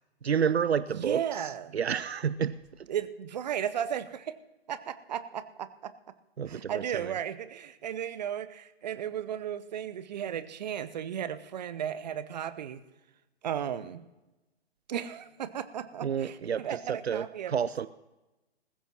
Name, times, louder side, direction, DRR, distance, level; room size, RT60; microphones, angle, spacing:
voice 1, 0.2-2.9 6.4-7.1 16.0-17.9, right 7 dB, 75° right, 16 dB, 0.5 m, -30 dB
voice 2, 0.9-1.8 2.9-4.3 4.7-5.9 6.5-12.8 13.4-14.0 14.9-17.5, right 9 dB, 40° right, 13 dB, 0.8 m, -35 dB
19.5 x 15.5 x 2.9 m, 1.0 s
figure-of-eight pair, 130°, 32 cm